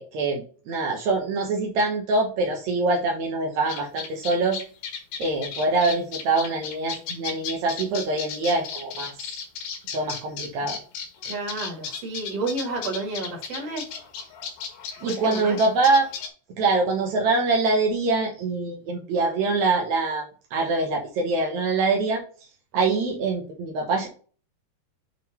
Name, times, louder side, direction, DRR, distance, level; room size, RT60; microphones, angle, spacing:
voice 1, 0.0-4.6 5.2-9.1 9.9-10.8 15.0-16.0 16.6-20.2 20.5-22.2 22.7-24.1, right 3 dB, 70° right, 0 dB, 1.7 m, -24 dB
sound 1, 3.7-16.3, left 6 dB, 75° left, 3.6 m, -35 dB
voice 2, 11.2-13.8 15.0-15.6, right 3 dB, 40° right, 0 dB, 2.6 m, -31 dB
8.2 x 3.8 x 4.4 m, 0.40 s
omnidirectional pair, 5.1 m